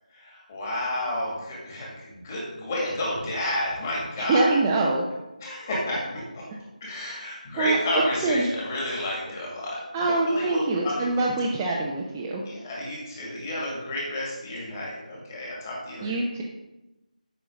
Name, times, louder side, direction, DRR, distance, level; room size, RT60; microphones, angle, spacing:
voice 1, 0.1-4.6 5.4-6.4 6.8-11.0 12.5-16.2, left 1 dB, 20° left, -4 dB, 2.0 m, -31 dB
voice 2, 4.2-5.0 6.9-7.8 8.2-8.5 9.9-12.4 16.0-16.4, right 2 dB, 10° right, -3 dB, 0.4 m, -25 dB
8.2 x 5.5 x 5.0 m, 1.0 s
figure-of-eight pair, 165°, 4 cm